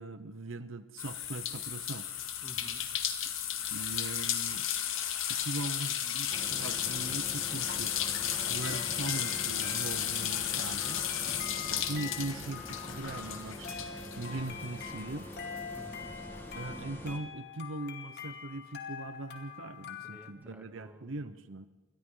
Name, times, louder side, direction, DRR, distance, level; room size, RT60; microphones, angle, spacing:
voice 1, 0.0-2.1 3.7-4.7 5.3-11.0 11.5-15.3 16.5-21.7, right 2 dB, 70° right, 11 dB, 0.9 m, -40 dB
sound 1, 1.0-15.0 15.3-16.6, left 10 dB, 75° left, 2.1 m, -34 dB
voice 2, 2.4-2.8 11.2-11.7 15.7-16.1 20.0-21.4, equal, 10° right, 2 dB, 2.7 m, -52 dB
sound 2, 6.3-17.2, equal, 10° left, 1.8 m, -46 dB
sound 3, 8.6-20.3, left 7 dB, 55° left, 2.5 m, -45 dB
29.0 x 23.0 x 3.9 m, 1.2 s
head